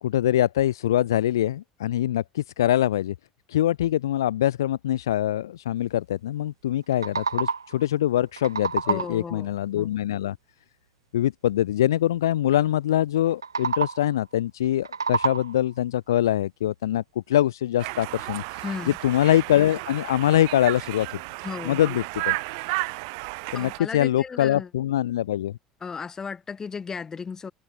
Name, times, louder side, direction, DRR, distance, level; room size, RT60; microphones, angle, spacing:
voice 1, 0.0-3.1 3.5-10.4 11.1-18.6 19.0-21.2 21.7-22.4 23.5-25.6, left 12 dB, 70° left, 0.5 m, -24 dB
sound 1, 6.7-7.8 8.2-9.3 13.3-14.2 14.6-15.7, right 5 dB, 80° right, 2.2 m, -29 dB
voice 2, 8.8-10.0 18.6-19.0 21.4-21.9 23.5-24.7 25.8-27.5, left 5 dB, 25° left, 3.8 m, -35 dB
Conversation, 17.8-23.8, right 31 dB, 60° right, 2.9 m, -33 dB
figure-of-eight pair, 65°, 2 cm